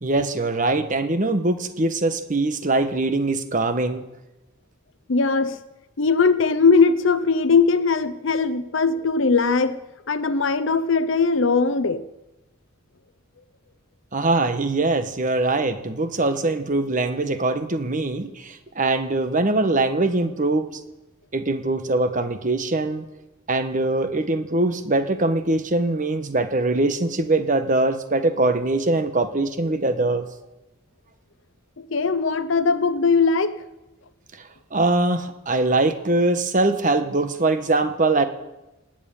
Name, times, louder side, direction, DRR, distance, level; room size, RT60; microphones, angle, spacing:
voice 1, 0.0-4.0 14.1-20.7 21.3-23.1 23.5-30.3 34.7-38.2, right 2 dB, 40° right, 9 dB, 1.2 m, -22 dB
voice 2, 5.1-5.6 6.0-9.8 10.1-12.0 31.8-33.5, left 4 dB, 70° left, 12 dB, 0.7 m, -20 dB
19.5 x 7.6 x 9.0 m, 1.0 s
head